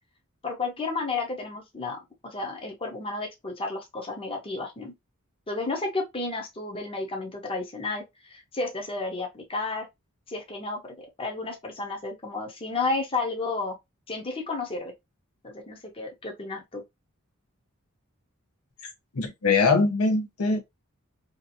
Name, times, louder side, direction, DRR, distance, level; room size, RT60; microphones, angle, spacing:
voice 1, 0.4-4.9 5.5-9.9 10.3-13.7 14.1-14.9 15.4-16.8, left 3 dB, 25° left, 0.7 m, -32 dB
voice 2, 18.8-20.6, left 4 dB, 85° left, 0.7 m, -23 dB
2.8 x 2.4 x 2.5 m
head